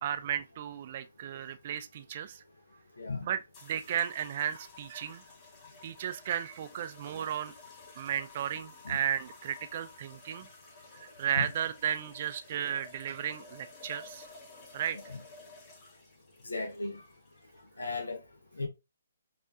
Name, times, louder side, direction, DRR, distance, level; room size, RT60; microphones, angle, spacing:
voice 1, 0.0-2.4 3.2-5.2 5.8-7.5 8.0-10.5 10.9-14.3 14.7-15.0, right 9 dB, 45° right, 0.4 m, -34 dB
voice 2, 3.0-3.3 11.4-11.5 16.4-17.0 17.8-18.2 18.6-18.7, left 3 dB, 85° left, 0.7 m, -35 dB
sound 1, 3.5-17.8, left 3 dB, 25° left, 2.0 m, -53 dB
5.3 x 2.5 x 2.4 m
hypercardioid pair, 145°, 0 cm